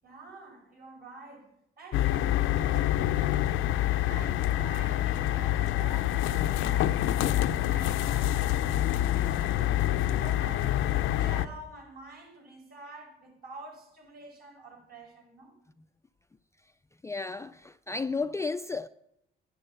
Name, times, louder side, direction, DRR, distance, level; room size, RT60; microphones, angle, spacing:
voice 1, 0.0-3.7 4.0-9.8 10.2-15.5, right 3 dB, 50° right, 5.7 m, -48 dB
sound 1, 1.9-11.5, left 13 dB, 90° left, 0.6 m, -26 dB
voice 2, 17.0-18.9, left 4 dB, 15° left, 0.4 m, -33 dB
11.0 x 10.5 x 5.9 m
cardioid pair, 90°, 20 cm